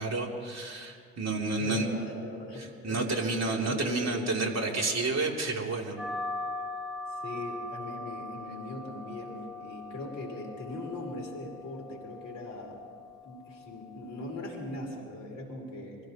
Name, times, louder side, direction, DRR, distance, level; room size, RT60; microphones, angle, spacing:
voice 1, 0.0-2.1 2.6-5.9, right 3 dB, 40° right, 0 dB, 3.4 m, -30 dB
voice 2, 1.6-3.1 3.6-4.6 7.1-12.8 13.2-16.0, left 2 dB, 55° left, 0 dB, 4.7 m, -40 dB
sound 1, 6.0-15.0, left 2 dB, ahead, 3.1 m, -41 dB
25.0 x 16.5 x 3.1 m, 2.1 s
hypercardioid pair, 55°, 40 cm